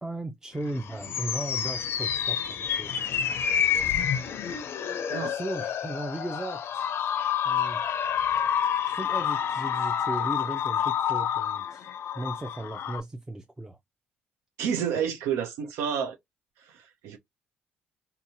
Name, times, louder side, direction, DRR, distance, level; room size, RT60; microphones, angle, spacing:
voice 1, 0.0-3.0 5.3-6.9 7.4-7.8 8.8-11.9 12.1-13.8, right 1 dB, 15° right, 0.5 m, -36 dB
sound 1, 0.6-13.0, left 8 dB, 60° left, 0.4 m, -28 dB
voice 2, 5.1-5.4 14.6-16.2 16.6-17.2, right 8 dB, 85° right, 0.4 m, -30 dB
2.7 x 2.2 x 2.6 m
supercardioid pair, 65°, 5 cm